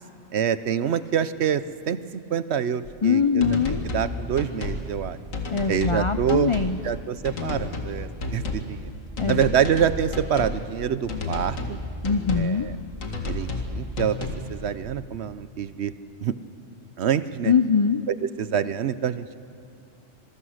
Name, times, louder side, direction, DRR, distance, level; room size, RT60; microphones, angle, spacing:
voice 1, 0.3-2.0 2.3-3.4 3.9-5.2 5.7-6.5 6.8-8.9 9.3-11.8 12.4-12.6 13.2-14.2 14.5-15.9 16.2-16.3 17.0-17.5 18.4-19.3, right 8 dB, 60° right, 14 dB, 0.9 m, -26 dB
sound 1, 2.9-3.0 3.4-4.1 4.4-4.8 5.3-6.0 6.3-6.7 7.3-7.9 8.2-8.7 9.2-10.6 11.1-11.8 12.0-12.5 13.0-13.7 14.0-14.4, left 2 dB, 85° left, 2.4 m, -30 dB
voice 2, 3.0-3.8 5.5-6.8 9.2-9.5 12.0-12.7 17.4-18.0, left 6 dB, 55° left, 10 dB, 0.3 m, -22 dB
26.0 x 22.0 x 6.4 m, 2.4 s
omnidirectional pair, 1.3 m